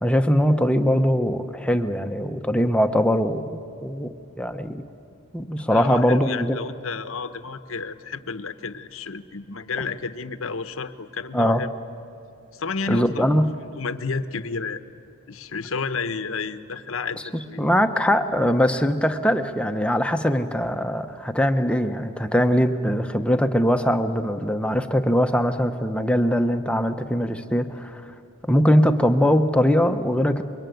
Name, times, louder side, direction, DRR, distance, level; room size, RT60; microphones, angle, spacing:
voice 1, 0.0-4.8 5.3-6.6 11.3-11.6 12.9-13.5 17.6-28.0 28.4-30.4, equal, 5° left, 7 dB, 0.9 m, -21 dB
voice 2, 5.6-11.7 12.5-13.2 13.8-14.8 15.3-17.6, left 4 dB, 65° left, 11 dB, 1.0 m, -31 dB
25.0 x 23.0 x 9.3 m, 2.7 s
head